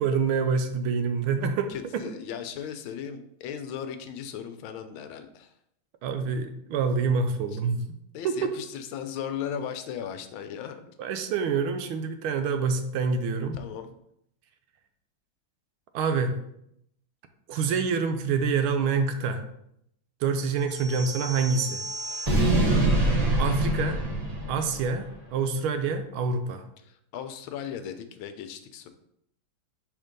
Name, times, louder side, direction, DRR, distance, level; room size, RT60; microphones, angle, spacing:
voice 1, 0.0-2.1 6.0-7.8 8.2-8.5 11.0-13.6 15.9-16.3 17.5-19.4 20.2-21.8 23.4-24.0 24.5-26.6, right 5 dB, 85° right, 8 dB, 1.5 m, -26 dB
voice 2, 1.4-5.5 7.5-7.6 8.1-10.9 13.5-14.0 22.5-22.9 26.8-28.9, left 8 dB, 80° left, 9 dB, 1.4 m, -37 dB
sound 1, 20.7-25.0, right 1 dB, 35° right, 0.6 m, -26 dB
5.0 x 3.6 x 5.1 m, 0.75 s
omnidirectional pair, 2.3 m